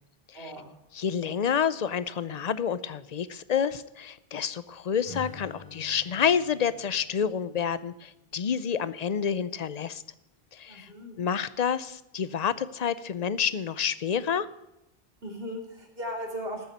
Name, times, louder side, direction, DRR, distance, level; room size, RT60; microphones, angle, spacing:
voice 1, 0.3-0.7 10.7-11.2 15.2-16.7, equal, 65° right, 1 dB, 3.2 m, -37 dB
voice 2, 0.9-10.0 10.5-10.9 11.2-14.5, left 7 dB, 45° left, 16 dB, 0.6 m, -29 dB
Acoustic guitar / Strum, 5.0-9.0, left 3 dB, 70° left, 2.8 m, -48 dB
13.5 x 7.1 x 9.2 m, 0.92 s
omnidirectional pair, 1.1 m